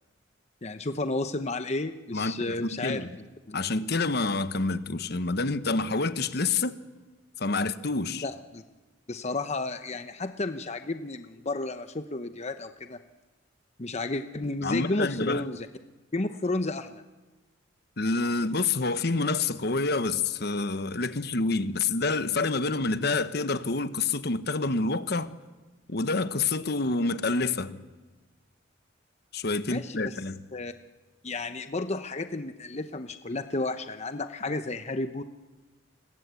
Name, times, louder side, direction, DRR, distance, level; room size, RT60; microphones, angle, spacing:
voice 1, 0.6-3.1 3.5-3.6 8.1-8.6 9.1-13.0 13.8-15.7 16.1-17.0 29.7-30.2 30.5-30.7 31.2-35.2, left 2 dB, 35° left, 0.9 m, -32 dB
voice 2, 2.1-3.2 3.5-6.7 7.4-8.3 14.6-15.4 18.0-25.3 25.9-27.8 29.3-30.4, left 3 dB, 55° left, 1.1 m, -28 dB
29.5 x 22.0 x 8.3 m
head